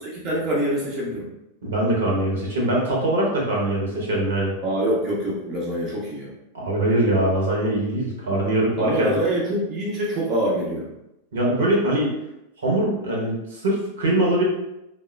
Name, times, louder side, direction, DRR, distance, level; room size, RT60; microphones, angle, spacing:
voice 1, 0.2-1.3 4.6-6.3 8.8-10.9, right 1 dB, 30° right, -4 dB, 0.6 m, -25 dB
voice 2, 1.6-4.5 6.5-9.2 11.3-12.1 12.6-14.4, right 1 dB, 65° right, -2 dB, 0.8 m, -22 dB
3.4 x 2.1 x 2.2 m, 0.87 s
figure-of-eight pair, 90°, 0 cm